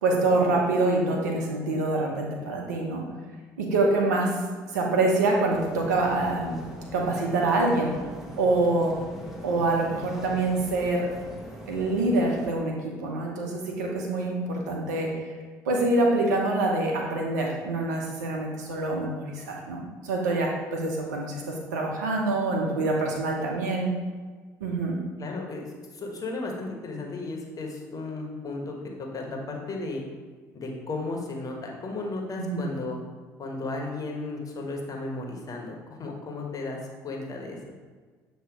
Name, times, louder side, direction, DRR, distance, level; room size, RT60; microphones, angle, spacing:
voice 1, 0.0-3.0 3.6-4.3 4.7-6.6 6.9-7.9 8.4-8.9 9.4-11.1 11.7-12.7 13.0-15.1 15.7-23.9 24.6-25.0 32.4-32.6, right 2 dB, 85° right, 0 dB, 1.0 m, -25 dB
sound 1, 5.5-12.5, equal, 5° right, 1.5 m, -42 dB
voice 2, 25.2-25.7 25.9-30.0 30.5-33.0 33.4-37.6, left 3 dB, 40° left, 1 dB, 1.5 m, -34 dB
7.6 x 3.1 x 4.8 m, 1.5 s
hypercardioid pair, 55°, 9 cm